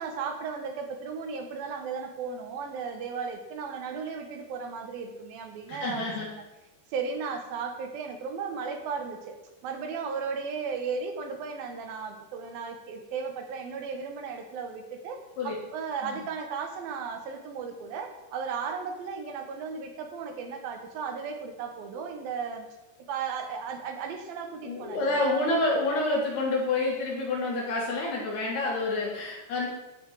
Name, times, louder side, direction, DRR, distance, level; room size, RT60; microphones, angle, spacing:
voice 1, 0.0-6.4 6.9-9.4 9.6-22.7 23.1-25.6, right 5 dB, 75° right, 4 dB, 2.9 m, -35 dB
voice 2, 5.7-6.3 15.4-15.5 16.0-16.2 24.6-29.7, left 2 dB, 90° left, -3 dB, 5.0 m, -28 dB
12.5 x 8.0 x 4.7 m, 1.0 s
omnidirectional pair, 4.5 m